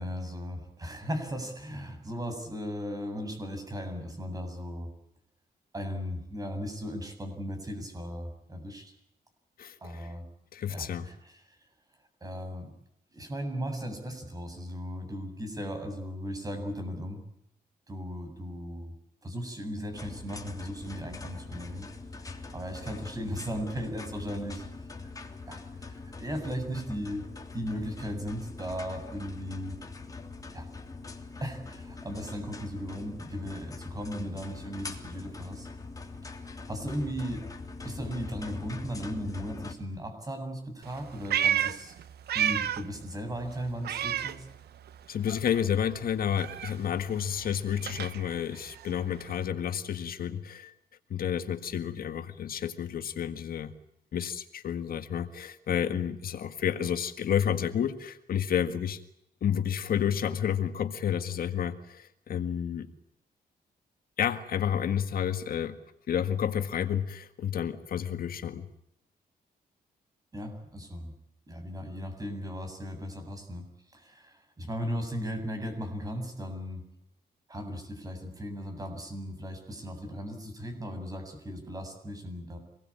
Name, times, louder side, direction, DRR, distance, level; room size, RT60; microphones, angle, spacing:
voice 1, 0.0-4.9 5.7-8.9 9.8-10.3 10.7-11.4 12.2-12.7 13.1-17.2 17.9-18.9 19.2-21.9 22.5-24.6 25.5-25.6 26.0-27.2 27.5-29.8 30.5-30.7 31.4-35.7 36.7-37.4 37.8-41.9 42.3-44.5 70.3-71.1 71.5-73.6 73.9-76.8 77.5-82.6, equal, 20° right, 6 dB, 7.8 m, -37 dB
voice 2, 9.6-10.1 10.5-11.1 45.1-50.7 51.1-53.7 54.1-59.0 59.4-62.9 64.2-65.8 66.1-68.6, left 9 dB, 65° left, 9 dB, 1.8 m, -30 dB
sound 1, 19.9-39.7, left 3 dB, 20° left, 3.3 m, -43 dB
Meow, 40.8-43.0 43.3-45.0 45.3-49.4, right 10 dB, 90° right, 1.2 m, -32 dB
26.5 x 20.5 x 8.7 m, 0.76 s
wide cardioid pair, 140°, 16 cm